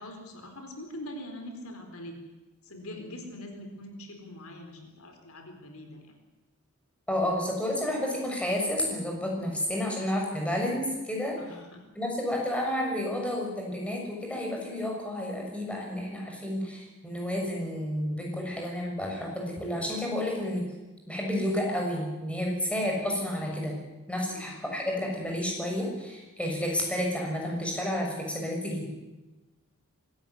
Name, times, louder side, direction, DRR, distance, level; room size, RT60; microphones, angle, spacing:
voice 1, 0.0-2.2 2.6-6.2 11.4-11.8 24.2-24.5, left 1 dB, 70° left, 5 dB, 4.4 m, -43 dB
voice 2, 7.1-11.3 11.9-20.6 21.1-23.8 24.1-28.9, left 1 dB, 5° left, -1 dB, 6.6 m, -31 dB
24.5 x 14.0 x 9.8 m, 1.1 s
head